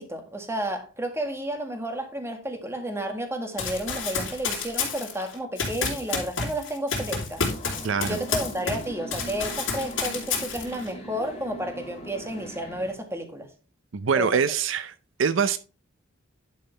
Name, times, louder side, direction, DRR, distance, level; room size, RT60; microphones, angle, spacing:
voice 1, 0.0-7.4 8.1-13.5 14.1-14.3, right 1 dB, 15° right, 1.7 m, -32 dB
Run, 3.6-8.8 9.1-10.9, left 5 dB, 75° left, 3.4 m, -30 dB
sound 1, 7.4-12.9, equal, 35° left, 2.1 m, -41 dB
voice 2, 7.8-8.2 13.9-14.9 15.2-15.6, right 6 dB, 70° right, 0.5 m, -24 dB
11.0 x 5.4 x 3.3 m
head